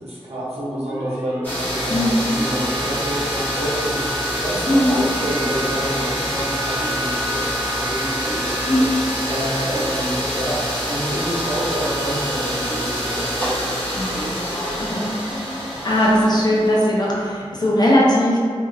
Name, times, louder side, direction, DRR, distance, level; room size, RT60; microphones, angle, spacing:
voice 1, 0.0-8.6 9.3-14.4 14.7-15.1 15.7-15.8, equal, 80° right, -8 dB, 0.8 m, -28 dB
Alarm, 0.9-1.5 2.3-3.0 3.8-4.5 5.3-5.9 6.7-7.4 8.2-8.9 9.7-10.4 11.2-11.8 12.6-13.3 14.1-14.8, right 1 dB, 15° right, 0.5 m, -35 dB
sound 1, 1.4-17.2, equal, 15° left, 1.3 m, -26 dB
voice 2, 1.9-2.2 4.7-5.1 8.7-8.8 13.9-15.1 15.8-18.4, equal, 40° left, -6 dB, 0.6 m, -19 dB
2.8 x 2.6 x 2.6 m, 2.1 s
wide cardioid pair, 55°, 11 cm